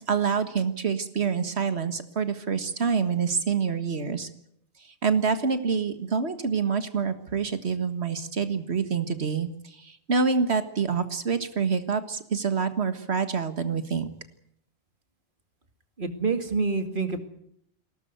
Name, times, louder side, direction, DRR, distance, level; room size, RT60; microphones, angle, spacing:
voice 1, 0.0-4.3 5.0-14.1, right 5 dB, 75° right, 10 dB, 1.9 m, -26 dB
voice 2, 16.0-17.2, right 4 dB, 50° right, 7 dB, 2.4 m, -27 dB
21.5 x 17.5 x 9.4 m, 0.73 s
omnidirectional pair, 1.1 m